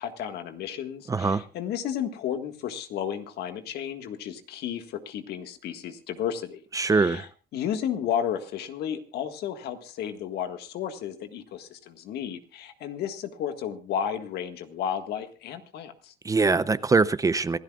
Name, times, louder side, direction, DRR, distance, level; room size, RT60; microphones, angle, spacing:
voice 1, 0.0-6.6 6.9-16.1, left 9 dB, 75° left, 1.7 m, -33 dB
voice 2, 1.1-1.4 6.8-7.3 16.2-17.6, right 4 dB, 20° right, 0.6 m, -22 dB
26.0 x 12.5 x 2.4 m
cardioid pair, 110°, 17 cm